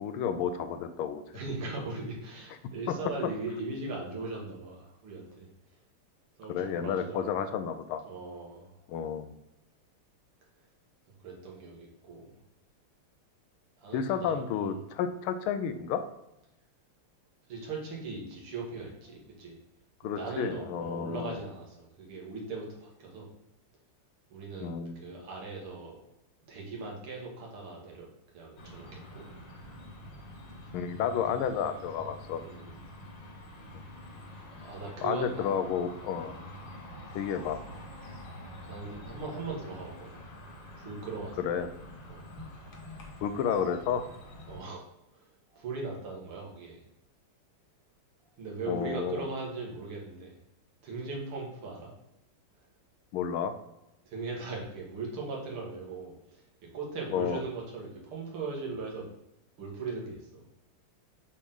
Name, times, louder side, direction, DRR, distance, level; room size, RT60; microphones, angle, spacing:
voice 1, 0.0-1.2 2.9-3.0 6.5-8.0 8.9-9.3 13.9-16.0 20.0-21.4 24.6-25.0 30.7-32.4 33.7-33.8 35.0-36.3 37.1-37.6 41.4-41.7 43.2-44.0 48.7-49.3 53.1-53.5 57.1-57.4, left 7 dB, 80° left, 9 dB, 1.5 m, -31 dB
voice 2, 1.3-5.5 6.4-7.3 8.0-8.7 11.2-12.4 13.8-14.8 17.5-19.6 20.0-23.3 24.3-26.0 26.5-28.1 28.3-29.3 32.3-32.8 34.6-35.5 35.8-35.9 36.2-36.4 38.7-40.2 40.8-41.5 42.1-42.2 44.5-44.8 45.1-46.8 48.4-50.4 50.8-51.9 54.1-59.1 59.6-60.4, right 3 dB, 75° right, -2 dB, 2.5 m, -39 dB
sound 1, 28.6-44.6, left 1 dB, 60° left, 1.9 m, -47 dB
7.0 x 4.5 x 3.7 m, 0.89 s
omnidirectional pair, 2.4 m